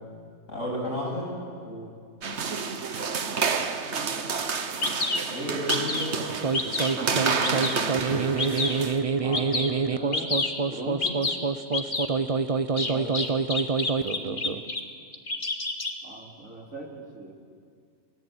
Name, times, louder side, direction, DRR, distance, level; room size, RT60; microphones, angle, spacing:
voice 1, 0.5-1.3 5.3-6.2 6.9-7.7 12.8-13.1, left 1 dB, 75° left, -3 dB, 8.7 m, -33 dB
voice 2, 1.6-2.0 9.2-10.4 10.7-11.2 13.9-14.6 16.0-17.3, right 2 dB, 80° right, 0 dB, 3.7 m, -40 dB
sound 1, 2.2-9.0, right 5 dB, 60° right, 1.5 m, -29 dB
Bird vocalization bird call bird song, 4.3-4.4 4.8-5.2 5.7-6.1 6.5-6.9 7.4-7.8 8.4-8.8 9.3-9.7 10.1-10.5 11.0-11.4 11.7-12.1 12.8-14.8 15.1-15.9, left 3 dB, 40° left, 1.9 m, -28 dB
sound 2, 6.2-14.7, right 4 dB, 35° right, 0.7 m, -27 dB
29.0 x 18.0 x 8.8 m, 2.2 s
omnidirectional pair, 1.4 m